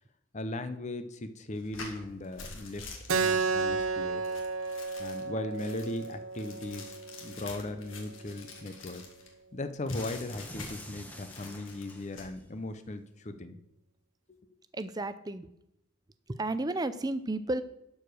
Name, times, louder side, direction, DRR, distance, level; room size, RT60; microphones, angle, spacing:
voice 1, 0.3-2.9 3.2-4.3 5.0-7.0 7.2-9.0 9.5-13.6, left 2 dB, 30° left, 10 dB, 0.6 m, -38 dB
sound 1, 1.5-9.3 9.9-11.0 11.3-12.3, left 4 dB, 60° left, 1.8 m, -47 dB
Keyboard (musical), 3.1-8.2, right 4 dB, 65° right, 0.7 m, -33 dB
sound 2, 10.0-12.4, equal, 5° left, 1.0 m, -47 dB
voice 2, 14.7-15.5 16.3-17.6, right 2 dB, 20° right, 12 dB, 0.4 m, -32 dB
12.0 x 4.8 x 6.2 m, 0.82 s
head